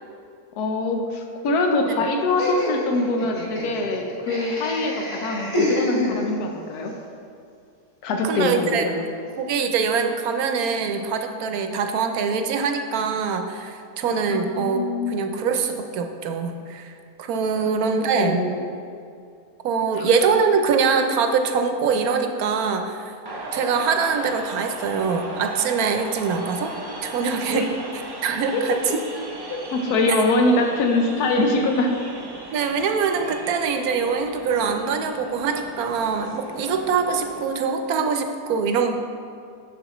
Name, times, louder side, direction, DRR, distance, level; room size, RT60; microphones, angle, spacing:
voice 1, 0.5-4.9 5.2-6.9 8.0-9.0 14.3-15.2 18.2-18.6 19.9-20.1 27.5-27.7 28.5-28.6 29.5-31.9, left 2 dB, 80° left, 3 dB, 1.3 m, -23 dB
Laughter, 2.4-6.6, left 1 dB, 20° left, 1.7 m, -27 dB
voice 2, 8.2-8.9 9.4-16.9 17.2-18.4 19.6-23.1 23.5-26.7 27.0-27.7 28.2-29.0 32.5-38.9, right 5 dB, 70° right, 6 dB, 1.1 m, -23 dB
sound 1, 23.3-37.5, right 2 dB, 40° right, 0.3 m, -37 dB
9.4 x 7.1 x 3.0 m, 2.4 s
omnidirectional pair, 1.7 m